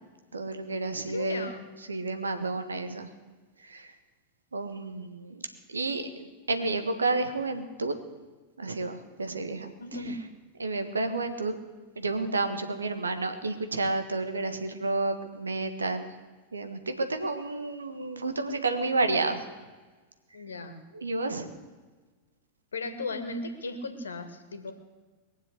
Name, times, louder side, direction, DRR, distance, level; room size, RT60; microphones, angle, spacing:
voice 1, 0.3-1.5 1.9-3.1 3.6-3.9 4.5-7.9 8.6-9.7 10.6-11.6 12.0-16.1 16.5-19.5 20.9-21.5, right 3 dB, 75° right, 7 dB, 1.6 m, -30 dB
voice 2, 0.9-1.6 9.8-10.2 20.3-20.8 22.7-24.7, left 2 dB, 70° left, 8 dB, 1.9 m, -36 dB
21.5 x 7.5 x 8.2 m, 1.3 s
figure-of-eight pair, 90°, 0 cm